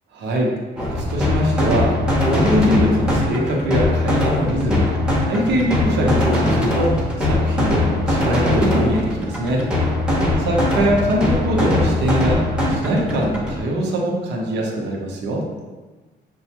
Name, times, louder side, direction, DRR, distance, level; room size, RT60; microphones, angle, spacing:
voice 1, 0.2-4.9 5.2-9.7 10.4-15.4, equal, 75° right, -1 dB, 0.9 m, -22 dB
sound 1, 0.8-13.6, left 1 dB, 5° right, 0.8 m, -20 dB
6.2 x 2.3 x 2.9 m, 1.3 s
cardioid pair, 135°, 18 cm